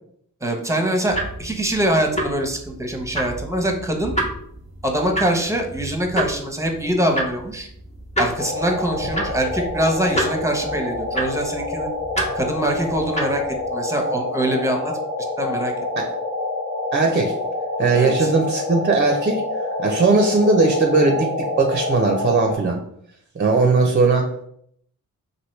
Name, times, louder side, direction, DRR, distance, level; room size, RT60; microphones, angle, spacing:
voice 1, 0.4-4.1 4.8-7.7 8.2-11.9 12.3-14.9 15.4-15.7 17.9-18.3, right 1 dB, 10° right, 3 dB, 0.8 m, -23 dB
sound 1, 1.1-13.7, right 1 dB, 20° left, 0.9 m, -30 dB
sound 2, 8.4-22.6, left 2 dB, 50° left, 1.0 m, -27 dB
voice 2, 16.9-17.4 17.8-19.4 19.8-21.3 21.6-22.8 23.4-24.5, right 3 dB, 30° right, 2 dB, 0.5 m, -18 dB
3.0 x 2.6 x 3.1 m, 0.70 s
supercardioid pair, 45°, 37 cm